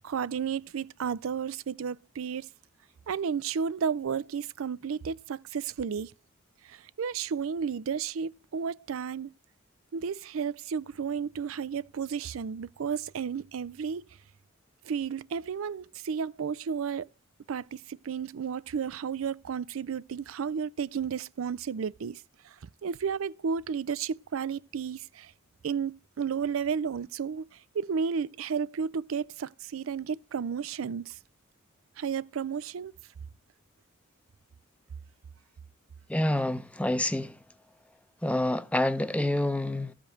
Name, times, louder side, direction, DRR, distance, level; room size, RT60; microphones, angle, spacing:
voice 1, 0.0-2.5 3.1-6.1 6.6-9.3 9.9-14.1 14.8-17.1 17.5-22.6 22.8-25.3 25.6-31.2 32.0-32.9, right 6 dB, 80° right, 0.4 m, -32 dB
voice 2, 36.1-37.4 38.2-39.9, left 1 dB, 5° left, 0.7 m, -27 dB
13.0 x 5.1 x 6.3 m
head